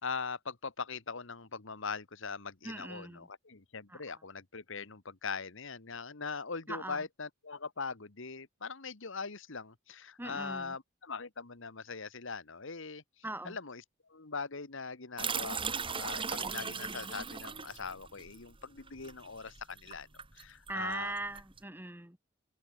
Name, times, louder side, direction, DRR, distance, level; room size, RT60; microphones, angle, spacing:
voice 1, 0.0-13.8 14.1-21.1, left 5 dB, 70° left, 1.6 m, -41 dB
voice 2, 2.6-3.3 3.9-4.0 6.7-7.0 10.2-10.8 13.2-13.6 20.7-22.2, right 2 dB, 10° right, 1.6 m, -40 dB
sound 1, 15.2-21.6, right 5 dB, 25° right, 1.6 m, -38 dB
open air
head